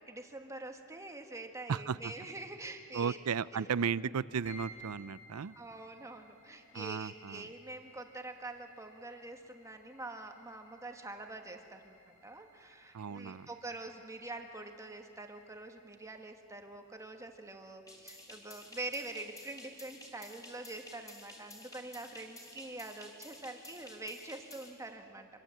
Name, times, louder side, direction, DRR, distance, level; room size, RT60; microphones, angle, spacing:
voice 1, 0.1-3.2 3.5-3.7 5.5-12.0 12.2-25.3, right 2 dB, 15° right, 4 dB, 1.5 m, -45 dB
voice 2, 1.7-2.1 2.9-5.6 6.7-7.5 12.9-13.5, right 6 dB, 80° right, 18 dB, 0.5 m, -35 dB
sound 1, 4.4-18.9, left 1 dB, 85° left, 5.8 m, -60 dB
sound 2, 17.9-24.7, left 1 dB, 15° left, 3.9 m, -52 dB
25.0 x 24.5 x 7.7 m, 2.6 s
head